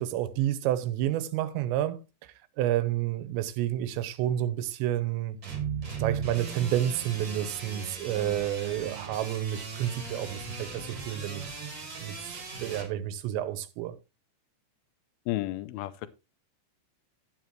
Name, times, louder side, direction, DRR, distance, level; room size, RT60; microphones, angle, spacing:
voice 1, 0.0-5.4 6.0-11.6 12.0-14.0, right 12 dB, 80° right, 3.0 m, -30 dB
sound 1, 5.4-12.9, right 5 dB, 30° right, 2.4 m, -38 dB
voice 2, 15.3-16.1, left 16 dB, 85° left, 2.2 m, -32 dB
12.5 x 9.3 x 3.0 m
omnidirectional pair, 5.2 m